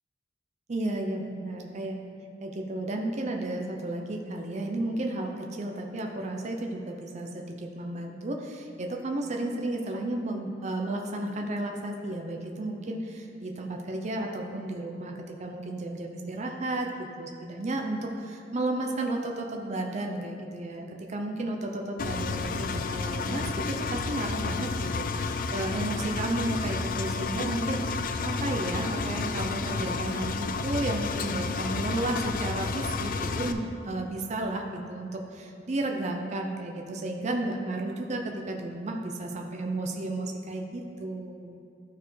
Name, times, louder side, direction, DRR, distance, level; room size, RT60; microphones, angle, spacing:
voice 1, 0.7-2.0 2.4-15.1 15.4-41.6, right 2 dB, 35° right, 2 dB, 0.5 m, -33 dB
Engine, 22.0-33.5, left 4 dB, 45° left, 0.3 m, -31 dB
12.0 x 4.5 x 3.2 m, 2.6 s
head